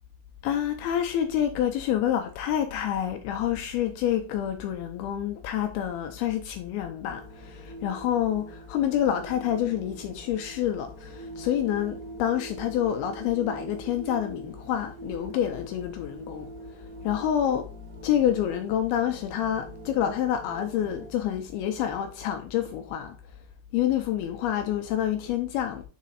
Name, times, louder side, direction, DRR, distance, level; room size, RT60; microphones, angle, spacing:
voice 1, 0.4-16.5 17.0-17.7 18.0-23.2 23.7-25.8, left 10 dB, 80° left, 2.2 m, -27 dB
sound 1, 7.0-21.1, right 2 dB, 60° right, 2.3 m, -44 dB
7.4 x 4.0 x 4.0 m
omnidirectional pair, 5.1 m